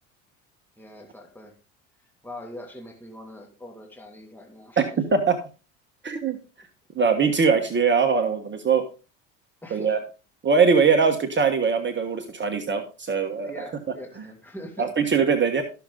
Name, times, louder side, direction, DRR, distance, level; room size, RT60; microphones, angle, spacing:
voice 1, 0.8-1.5 2.2-5.0 9.6-10.0 13.4-14.9, left 1 dB, 5° left, 2 dB, 2.4 m, -42 dB
voice 2, 4.8-5.4 6.0-6.4 6.9-8.8 9.7-10.0 10.4-13.6 14.8-15.6, right 5 dB, 30° right, 4 dB, 1.4 m, -21 dB
13.0 x 6.7 x 3.9 m, 0.33 s
hypercardioid pair, 75°, 39 cm